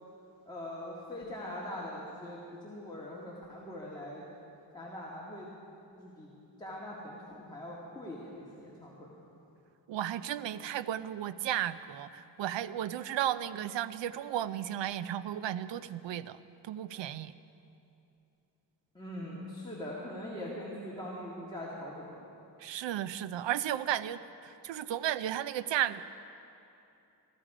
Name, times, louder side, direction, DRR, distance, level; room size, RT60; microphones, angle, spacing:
voice 1, 0.5-4.2 4.7-5.5 6.0-6.3 6.6-9.1 18.9-22.3, left 1 dB, 10° left, -6 dB, 2.0 m, -42 dB
voice 2, 9.9-16.4 16.6-17.3 22.6-26.0, right 11 dB, 90° right, 14 dB, 0.6 m, -34 dB
16.0 x 13.5 x 4.9 m, 2.8 s
wide cardioid pair, 105°, 43 cm